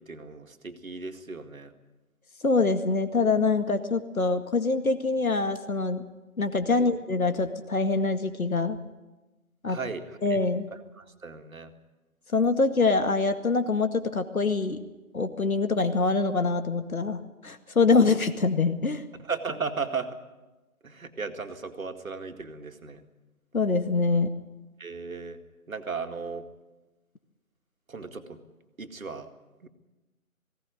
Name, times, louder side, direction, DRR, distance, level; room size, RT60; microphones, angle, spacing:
voice 1, 0.1-1.7 6.7-6.9 9.7-10.4 11.0-11.7 19.2-20.2 20.8-23.0 24.8-25.4 25.7-26.5 27.9-28.4 28.8-29.3 29.6-29.7, right 5 dB, 70° right, 7 dB, 2.3 m, -36 dB
voice 2, 2.4-6.0 6.4-8.8 9.6-9.8 10.2-10.7 12.3-14.8 15.1-19.0 23.5-24.3, left 3 dB, 70° left, 9 dB, 2.1 m, -24 dB
19.0 x 17.0 x 9.3 m, 1.1 s
figure-of-eight pair, 165°, 43 cm